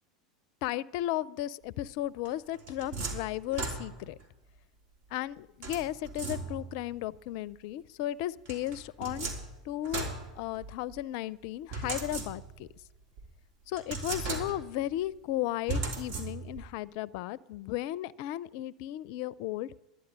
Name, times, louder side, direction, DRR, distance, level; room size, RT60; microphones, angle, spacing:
voice 1, 0.6-4.2 5.1-9.3 9.7-10.1 10.4-12.7 13.7-19.7, left 14 dB, 60° left, 21 dB, 0.5 m, -35 dB
sound 1, 2.3-4.2 5.6-6.8 8.5-11.0 11.7-12.7 13.2-13.3 13.8-14.8 15.7-16.7, right 3 dB, 55° right, 3.1 m, -37 dB
11.5 x 10.5 x 8.7 m, 0.91 s
hypercardioid pair, 95°, 4 cm